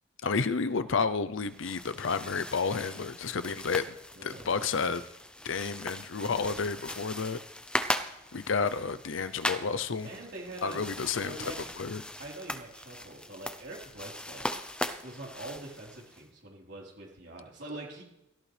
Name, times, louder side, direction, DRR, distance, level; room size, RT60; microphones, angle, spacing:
voice 1, 0.2-4.0 4.2-5.0 5.4-7.4 8.3-10.1 10.6-11.4 11.8-12.0, left 5 dB, 75° left, 13 dB, 0.6 m, -31 dB
sound 1, 1.4-16.2, left 1 dB, 5° left, 0.6 m, -39 dB
voice 2, 4.1-4.5 8.4-8.5 10.0-10.8 11.2-11.6 12.2-14.5 15.0-18.0, right 2 dB, 60° right, -3 dB, 4.1 m, -44 dB
17.0 x 14.0 x 3.4 m, 0.82 s
head